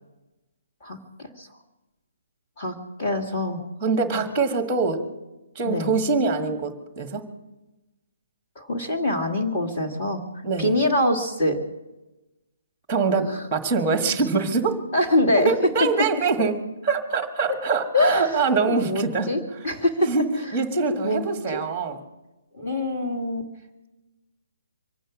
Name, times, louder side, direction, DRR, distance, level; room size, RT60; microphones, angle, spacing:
voice 1, 2.6-3.6 5.6-5.9 8.6-10.2 10.6-11.6 13.3-13.4 14.9-15.5 17.9-18.4 18.7-20.1 21.0-21.6 22.5-23.5, left 1 dB, 20° left, 4 dB, 2.2 m, -24 dB
voice 2, 3.8-5.0 5.5-7.2 10.4-10.7 12.9-14.8 15.4-19.3 20.0-22.0, right 4 dB, 5° right, 6 dB, 1.6 m, -24 dB
25.0 x 9.0 x 6.1 m, 1.0 s
hypercardioid pair, 180°, 0 cm